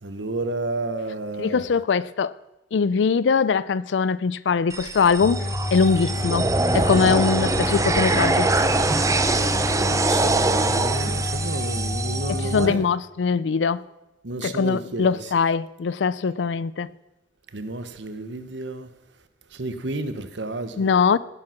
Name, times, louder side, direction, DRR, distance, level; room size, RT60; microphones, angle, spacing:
voice 1, 0.0-1.6 9.6-12.9 14.2-15.3 17.5-18.9 19.5-20.9, right 2 dB, 80° right, 1.1 m, -31 dB
voice 2, 1.4-2.3 2.7-5.4 5.7-6.5 6.7-8.5 12.3-13.8 14.4-16.9 20.8-21.2, left 5 dB, 80° left, 0.4 m, -22 dB
sound 1, 4.7-12.7, right 3 dB, 20° right, 0.7 m, -24 dB
sound 2, 5.2-12.7, left 2 dB, 15° left, 1.1 m, -29 dB
16.5 x 7.7 x 5.8 m
head